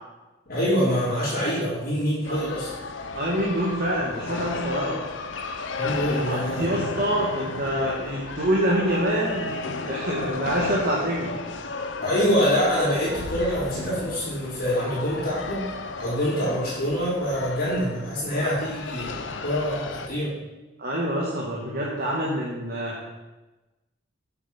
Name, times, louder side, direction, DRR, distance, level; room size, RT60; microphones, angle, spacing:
voice 1, 0.5-2.7 5.7-6.7 12.0-15.6 16.0-19.1 19.4-20.3, equal, 50° left, -10 dB, 4.0 m, -25 dB
sound 1, 2.2-20.1, left 3 dB, 70° left, 0.8 m, -34 dB
voice 2, 3.1-5.0 6.2-11.4 18.4-18.5 20.8-23.1, equal, 45° right, -4 dB, 1.7 m, -26 dB
7.9 x 7.9 x 5.8 m, 1.1 s
head